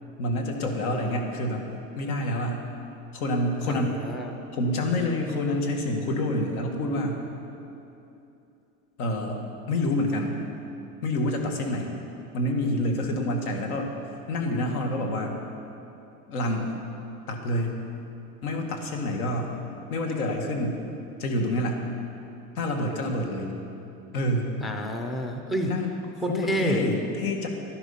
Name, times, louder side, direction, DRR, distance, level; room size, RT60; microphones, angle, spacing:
voice 1, 0.2-1.7 2.0-2.6 3.1-4.0 4.5-7.2 9.0-9.4 9.7-10.4 11.0-11.9 12.3-13.9 14.3-15.4 16.3-16.8 17.3-17.7 18.4-19.6 19.9-20.8 21.2-21.8 22.6-23.6 24.1-24.5 25.6-25.9 26.2-27.5, left 1 dB, 85° left, 2 dB, 2.0 m, -27 dB
voice 2, 3.7-4.4 24.6-25.7 26.2-26.8, right 1 dB, ahead, 4 dB, 0.3 m, -29 dB
12.0 x 11.0 x 5.6 m, 2.8 s
supercardioid pair, 135°, 42 cm